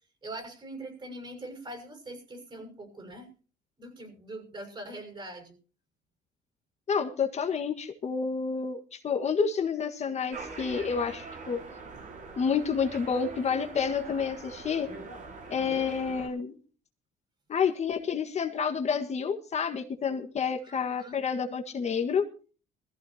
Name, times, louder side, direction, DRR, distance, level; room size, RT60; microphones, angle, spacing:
voice 1, 0.2-3.3 3.8-5.6 20.6-21.2, right 1 dB, 30° right, 7 dB, 6.6 m, -42 dB
voice 2, 6.9-11.6 12.4-14.9 15.5-16.6 17.5-22.2, left 6 dB, 40° left, 4 dB, 1.7 m, -29 dB
sound 1, 10.3-16.3, right 3 dB, 50° right, 5.8 m, -43 dB
21.0 x 15.0 x 2.9 m, 0.37 s
cardioid pair, 110°, 17 cm